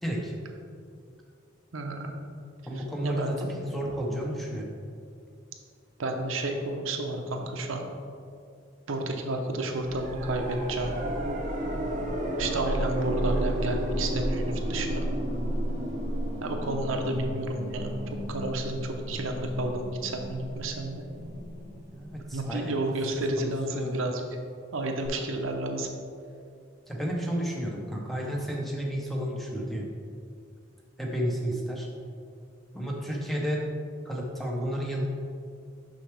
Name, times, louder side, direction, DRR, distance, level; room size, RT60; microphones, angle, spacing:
voice 1, 0.0-0.3 2.7-4.7 21.9-22.7 23.4-24.0 26.9-29.8 31.0-31.9 32.7-33.6 34.0-35.0, equal, ahead, -2 dB, 0.7 m, -31 dB
voice 2, 1.7-2.1 2.7-3.5 6.0-7.8 8.9-10.9 12.4-15.1 16.4-18.0 18.3-21.0 22.3-24.2 24.7-25.9, right 2 dB, 90° right, 3 dB, 0.7 m, -31 dB
sound 1, 9.8-22.7 25.1-25.2, right 1 dB, 35° right, 0.7 m, -32 dB
6.3 x 5.7 x 3.3 m, 2.4 s
head